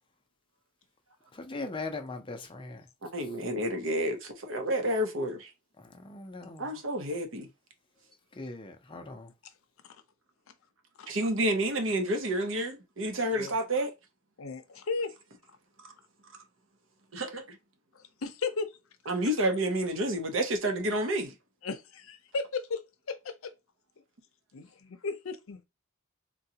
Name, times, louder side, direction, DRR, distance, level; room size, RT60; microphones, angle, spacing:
voice 1, 1.3-2.8 5.8-6.7 8.3-9.3, left 3 dB, 25° left, 0.5 m, -40 dB
voice 2, 3.0-5.5 6.6-7.5 11.1-13.9 15.8-15.9 16.3-16.4 17.1-17.6 19.1-21.4, right 1 dB, 65° right, 0.7 m, -30 dB
voice 3, 14.4-15.1 18.2-18.7 21.6-23.5 24.5-25.6, left 4 dB, 80° left, 0.6 m, -35 dB
3.8 x 2.2 x 2.7 m
head